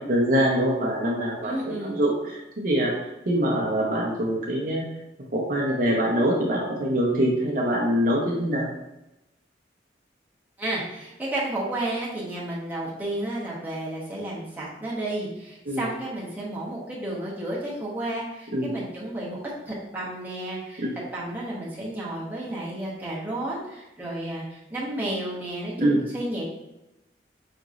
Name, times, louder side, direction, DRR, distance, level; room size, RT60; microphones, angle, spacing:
voice 1, 0.0-2.9 3.3-4.8 5.3-8.7 15.7-15.9 18.5-18.7 20.8-20.9 25.8-26.0, equal, 50° right, -2 dB, 0.6 m, -24 dB
voice 2, 1.4-2.0 10.6-20.8 21.1-26.4, right 1 dB, 10° right, -6 dB, 0.9 m, -32 dB
5.1 x 2.9 x 2.5 m, 0.94 s
head